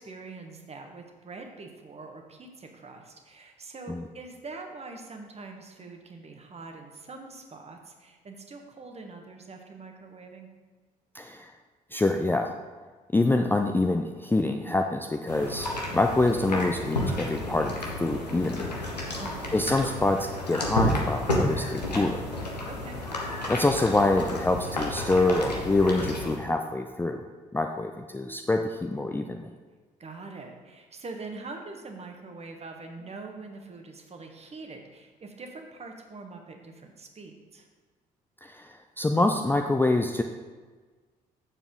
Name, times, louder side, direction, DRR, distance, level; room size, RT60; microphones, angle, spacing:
voice 1, 0.0-10.5 19.2-19.7 22.7-23.0 30.0-37.7, right 3 dB, 30° right, 3 dB, 1.3 m, -43 dB
voice 2, 11.1-11.5 11.9-12.6 13.1-18.7 19.5-22.3 23.5-27.2 27.5-29.5 38.4-40.2, left 2 dB, 10° left, 4 dB, 0.5 m, -26 dB
sound 1, 15.3-26.4, left 1 dB, 90° left, 0.9 m, -31 dB
8.3 x 6.9 x 3.7 m, 1.4 s
figure-of-eight pair, 45°, 21 cm